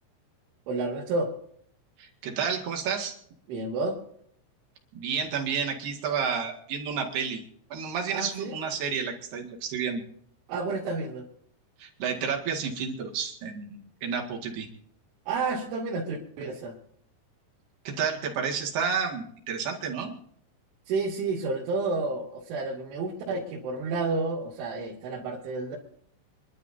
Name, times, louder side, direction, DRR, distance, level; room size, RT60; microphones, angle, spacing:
voice 1, 0.7-1.3 3.5-4.0 8.1-8.6 10.5-11.3 15.3-16.8 20.9-25.8, right 3 dB, 75° right, -6 dB, 5.1 m, -30 dB
voice 2, 2.0-3.1 4.9-7.4 7.7-10.0 11.8-14.7 17.9-20.1, right 6 dB, 60° right, 1 dB, 3.7 m, -31 dB
28.0 x 11.5 x 2.8 m, 0.66 s
omnidirectional pair, 5.6 m